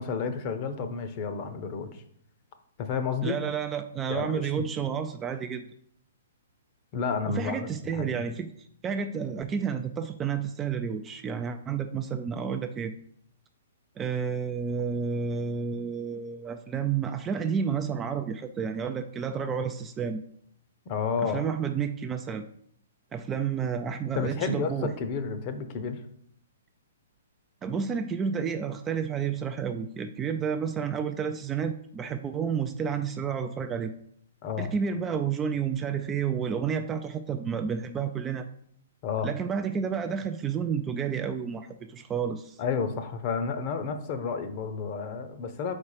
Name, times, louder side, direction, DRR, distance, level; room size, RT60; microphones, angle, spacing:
voice 1, 0.0-2.0 2.8-3.4 4.1-4.4 6.9-8.2 20.9-21.4 24.1-26.0 34.4-34.7 39.0-39.3 42.6-45.7, left 5 dB, 35° left, 8 dB, 0.7 m, -31 dB
voice 2, 3.2-5.7 7.3-8.5 8.8-12.9 14.0-20.2 21.2-22.4 23.1-24.9 27.6-33.9 34.6-38.5 39.2-42.6, right 7 dB, 15° right, 7 dB, 0.3 m, -30 dB
4.7 x 4.3 x 4.8 m, 0.65 s
hypercardioid pair, 150°, 0 cm